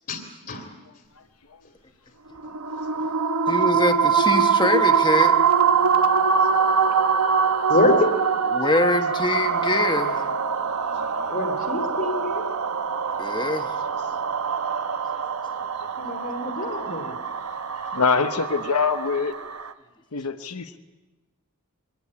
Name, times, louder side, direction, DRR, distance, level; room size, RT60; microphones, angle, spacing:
voice 1, 0.1-0.7 7.7-8.2 11.3-12.4 16.0-17.2, left 2 dB, 45° left, 2.4 m, -25 dB
sound 1, 2.4-19.7, right 6 dB, 75° right, 1.0 m, -23 dB
voice 2, 3.5-5.4 8.5-10.3 13.2-13.7, left 2 dB, 20° left, 1.2 m, -24 dB
voice 3, 17.9-19.3 20.1-20.8, left 5 dB, 85° left, 1.1 m, -23 dB
23.0 x 18.5 x 8.6 m
head